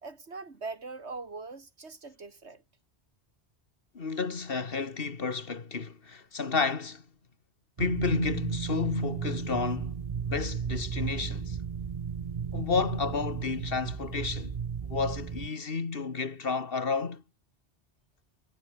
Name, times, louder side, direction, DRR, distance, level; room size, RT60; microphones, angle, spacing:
voice 1, 0.0-2.6, right 3 dB, 85° right, 2.8 m, -41 dB
voice 2, 3.9-7.0 7.8-10.0 10.3-11.6 12.5-14.6 14.9-17.2, left 4 dB, 60° left, 1.9 m, -31 dB
sound 1, 7.8-15.5, right 6 dB, 40° right, 0.7 m, -34 dB
omnidirectional pair, 1.1 m